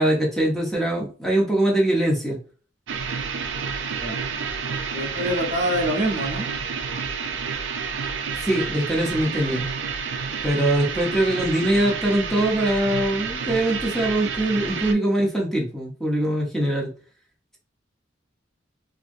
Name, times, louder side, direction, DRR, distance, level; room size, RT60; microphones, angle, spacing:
voice 1, 0.0-2.4 8.4-9.6 10.4-16.9, right 1 dB, ahead, -2 dB, 0.6 m, -22 dB
sound 1, 2.9-14.9, right 5 dB, 75° right, 0.4 m, -30 dB
voice 2, 4.9-6.5, equal, 40° right, 1 dB, 0.7 m, -25 dB
2.7 x 2.5 x 2.5 m, 0.39 s
head